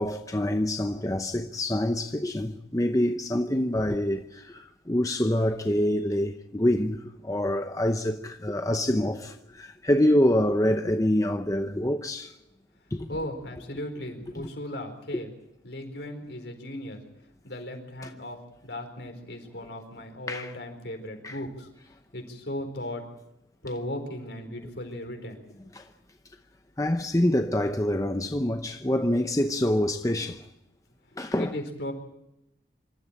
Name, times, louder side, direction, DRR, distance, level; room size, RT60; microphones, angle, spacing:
voice 1, 0.0-12.4 12.9-13.1 18.0-18.1 20.3-20.5 21.2-21.4 25.7-25.9 26.8-30.5 31.2-31.5, left 1 dB, 20° left, 0.8 m, -26 dB
voice 2, 13.1-15.3 15.6-17.0 17.4-21.7 22.1-23.1 23.6-25.4 31.4-31.9, left 1 dB, 70° left, 4.5 m, -37 dB
25.5 x 13.5 x 8.7 m
head